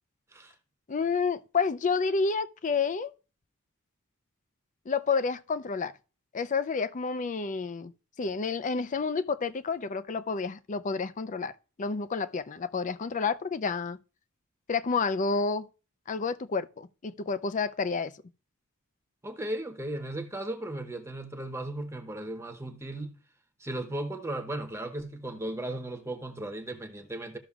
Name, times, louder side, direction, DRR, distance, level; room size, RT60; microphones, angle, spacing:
voice 1, 0.9-3.1 4.9-5.9 6.3-7.9 8.2-11.5 11.8-14.0 14.7-15.7 16.1-18.1, left 4 dB, 35° left, 0.4 m, -29 dB
voice 2, 19.2-23.1 23.6-27.4, right 1 dB, 15° right, 0.9 m, -36 dB
14.0 x 6.1 x 2.4 m
head